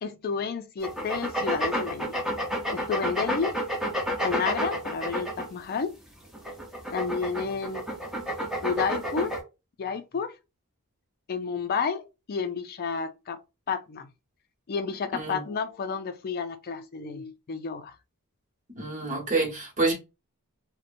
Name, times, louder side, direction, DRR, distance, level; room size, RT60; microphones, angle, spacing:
voice 1, 0.0-2.2 2.7-3.6 4.2-6.0 6.9-7.8 8.6-9.4 9.8-10.4 11.3-13.4 13.7-14.1 14.7-17.9, left 5 dB, 45° left, 0.4 m, -31 dB
sound 1, 0.8-5.7 6.3-9.4, equal, 5° right, 0.7 m, -30 dB
voice 2, 18.7-19.9, right 3 dB, 35° right, 1.1 m, -27 dB
2.8 x 2.1 x 2.5 m
head